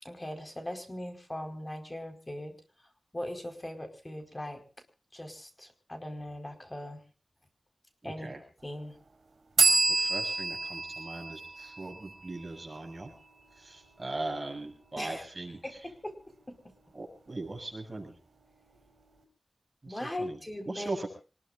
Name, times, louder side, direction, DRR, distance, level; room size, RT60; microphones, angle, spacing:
voice 1, 0.0-2.5 3.1-4.6 5.1-7.0 8.0-8.3 8.6-9.0 15.0-15.3 15.6-16.1 16.5-16.6 19.8-21.1, left 1 dB, 25° left, 5 dB, 4.8 m, -39 dB
voice 2, 8.0-8.4 9.9-13.1 13.6-15.6 16.9-18.1 19.8-20.4 20.7-21.1, right 2 dB, 35° right, 3 dB, 6.8 m, -39 dB
sound 1, 9.6-13.1, right 3 dB, 75° right, 4.5 m, -29 dB
26.5 x 20.5 x 2.6 m, 0.37 s
wide cardioid pair, 95°, 0 cm